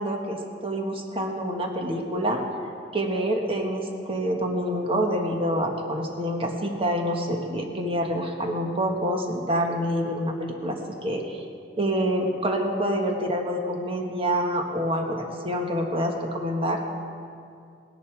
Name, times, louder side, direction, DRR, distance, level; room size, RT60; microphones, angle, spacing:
voice 1, 0.0-2.4 2.9-10.8 11.0-11.4 11.8-16.8, equal, 30° right, 2 dB, 1.4 m, -27 dB
18.5 x 10.5 x 4.6 m, 2.4 s
head